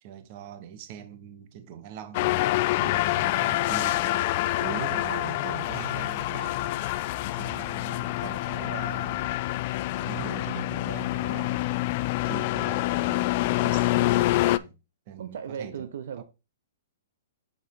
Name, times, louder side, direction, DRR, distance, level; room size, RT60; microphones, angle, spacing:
voice 1, 0.0-2.3 2.8-4.3 4.6-6.7 7.3-9.4 9.9-11.5 12.2-13.4 13.6-14.8 15.1-15.9 16.2-16.3, right 9 dB, 45° right, 1.0 m, -41 dB
sound 1, 2.1-14.6, left 17 dB, 45° left, 0.3 m, -26 dB
voice 2, 15.2-16.2, right 8 dB, 70° right, 0.6 m, -36 dB
6.5 x 5.2 x 3.1 m
hypercardioid pair, 140°, 0 cm